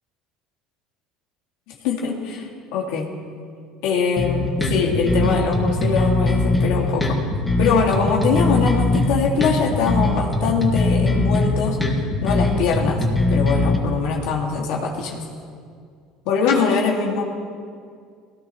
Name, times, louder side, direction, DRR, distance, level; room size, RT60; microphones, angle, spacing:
voice 1, 1.8-3.1 3.8-7.1 7.6-11.8 12.2-15.2 16.3-17.2, left 5 dB, 75° left, -1 dB, 2.2 m, -22 dB
sound 1, 4.2-13.8, left 2 dB, 10° left, 2.1 m, -20 dB
19.5 x 17.5 x 3.2 m, 2.2 s
supercardioid pair, 120°, 0 cm